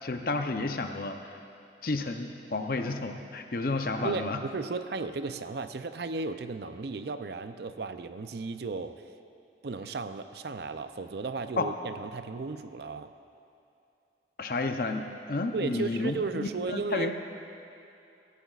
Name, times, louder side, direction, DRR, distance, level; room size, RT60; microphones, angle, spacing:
voice 1, 0.0-1.4 1.8-4.4 11.6-11.7 14.4-17.1, left 3 dB, 50° left, 5 dB, 0.7 m, -31 dB
voice 2, 4.0-9.0 9.6-13.1 15.5-17.1, right 3 dB, 60° right, 10 dB, 0.5 m, -35 dB
18.5 x 15.0 x 2.4 m, 2.6 s
head